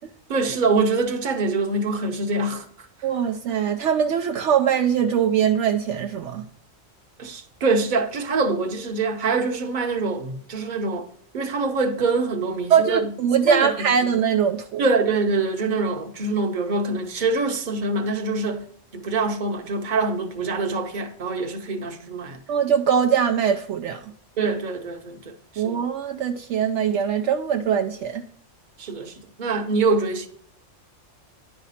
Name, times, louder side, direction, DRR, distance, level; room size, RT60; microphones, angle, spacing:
voice 1, 0.3-2.7 7.2-11.1 11.3-13.1 13.5-13.7 14.8-18.7 18.9-22.4 24.4-25.8 28.8-30.3, right 3 dB, 40° right, 1.0 m, -24 dB
voice 2, 3.0-6.4 12.7-14.8 22.5-24.0 25.6-28.2, right 8 dB, 70° right, 0.9 m, -22 dB
10.0 x 4.9 x 4.2 m
omnidirectional pair, 1.3 m